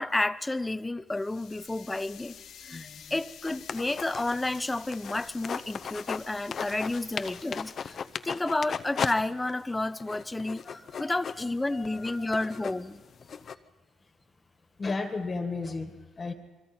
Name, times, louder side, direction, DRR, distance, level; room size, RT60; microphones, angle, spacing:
voice 1, 0.0-13.0, left 2 dB, 15° left, 0.6 m, -31 dB
sound 1, 1.1-8.3, left 8 dB, 80° left, 1.6 m, -50 dB
voice 2, 2.7-3.1 10.6-12.7 14.8-16.3, left 3 dB, 35° left, 1.7 m, -36 dB
sound 2, 3.5-6.2 6.5-9.1 9.5-9.6 10.0-13.5, left 6 dB, 50° left, 0.7 m, -36 dB
28.0 x 22.5 x 4.4 m
cardioid pair, 90°, 0 cm